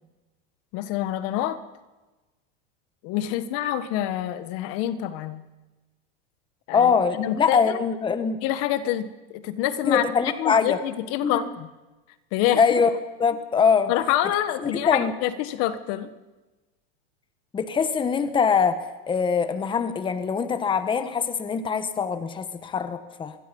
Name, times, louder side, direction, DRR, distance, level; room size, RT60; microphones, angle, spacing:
voice 1, 0.7-1.6 3.0-5.4 6.7-6.9 7.2-7.8 8.4-11.7 12.3-12.6 13.9-16.1, left 12 dB, 50° left, 12 dB, 1.4 m, -27 dB
voice 2, 6.7-8.4 9.8-10.8 11.2-11.4 12.6-13.9 14.6-15.1 17.5-23.3, left 6 dB, 15° left, 10 dB, 1.3 m, -23 dB
25.0 x 21.5 x 5.5 m, 1.1 s
supercardioid pair, 135°, 30 cm